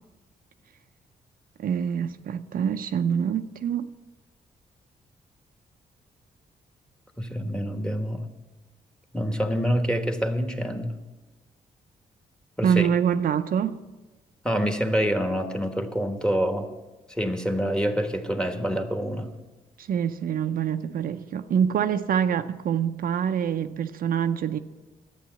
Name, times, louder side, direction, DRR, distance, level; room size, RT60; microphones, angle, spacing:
voice 1, 1.6-3.9 12.6-13.8 19.8-24.6, right 8 dB, 65° right, 0.6 m, -25 dB
voice 2, 7.2-8.2 9.1-10.9 12.6-12.9 14.4-16.7 17.1-19.3, equal, 5° left, 1.4 m, -26 dB
11.5 x 8.7 x 7.6 m
cardioid pair, 80°, 16 cm